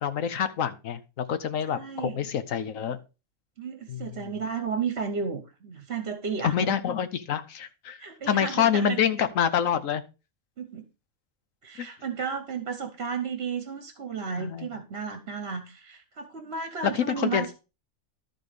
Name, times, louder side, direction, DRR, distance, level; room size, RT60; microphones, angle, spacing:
voice 1, 0.0-3.0 3.9-4.3 6.4-8.0 8.3-10.0 11.8-11.9 14.4-14.7 16.9-17.5, left 8 dB, 75° left, 1.3 m, -27 dB
voice 2, 1.7-2.3 3.6-6.8 8.0-9.0 10.6-10.9 11.6-17.5, right 5 dB, 55° right, 1.2 m, -33 dB
12.5 x 4.2 x 5.0 m
omnidirectional pair, 1.4 m